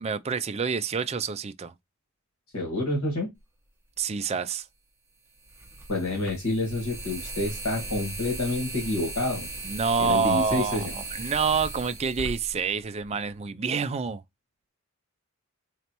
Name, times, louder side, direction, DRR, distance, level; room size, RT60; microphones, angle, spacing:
voice 1, 0.0-1.7 4.0-4.6 9.6-14.2, right 5 dB, 30° right, 0.4 m, -27 dB
voice 2, 2.5-3.3 5.9-9.5 10.0-10.9, left 2 dB, 75° left, 1.7 m, -28 dB
sound 1, 4.0-4.1 5.4-13.3, right 2 dB, 10° right, 1.2 m, -37 dB
4.0 x 3.2 x 2.9 m
head